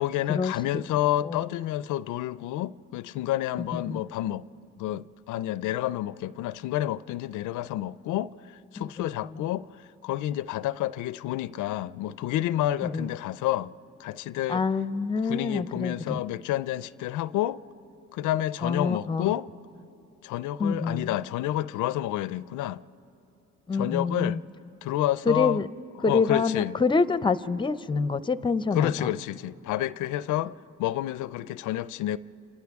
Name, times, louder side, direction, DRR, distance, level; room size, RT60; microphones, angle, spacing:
voice 1, 0.0-4.4 4.8-9.7 10.0-13.7 14.0-14.6 15.2-17.6 18.1-19.5 20.2-22.8 23.7-24.4 24.8-25.6 26.1-26.8 28.7-32.2, left 14 dB, 85° left, 0.4 m, -29 dB
voice 2, 8.8-9.1 9.3-9.4 12.8-13.1 14.5-16.2 18.6-19.3 20.6-21.1 23.7-24.4 25.3-25.7 26.0-29.1, left 4 dB, 15° left, 0.5 m, -26 dB
29.5 x 27.5 x 3.5 m
cardioid pair, 90°, 30 cm